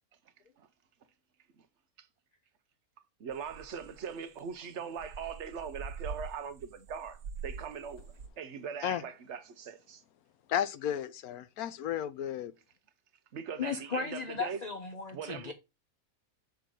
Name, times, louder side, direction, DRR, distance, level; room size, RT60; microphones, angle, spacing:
voice 1, 3.2-8.0 8.4-10.0 13.3-14.6 15.1-15.5, right 7 dB, 55° right, 1.0 m, -41 dB
sound 1, 3.3-8.3, right 5 dB, 90° right, 1.6 m, -44 dB
voice 2, 10.5-12.5, left 10 dB, 85° left, 1.2 m, -33 dB
voice 3, 13.6-15.5, left 5 dB, 40° left, 0.7 m, -36 dB
6.5 x 4.7 x 3.8 m
omnidirectional pair, 1.5 m